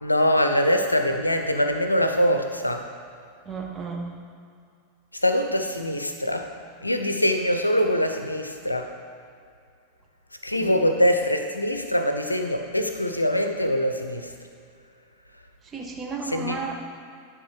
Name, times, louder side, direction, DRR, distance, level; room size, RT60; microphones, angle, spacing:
voice 1, 0.0-2.9 5.2-6.5 6.8-8.9 10.4-14.3 16.2-16.6, equal, 85° left, 6 dB, 0.5 m, -23 dB
voice 2, 3.5-4.1 10.6-10.7 15.7-16.7, right 4 dB, 20° right, 1 dB, 1.0 m, -33 dB
10.5 x 3.6 x 4.8 m, 2.3 s
figure-of-eight pair, 90°, 0 cm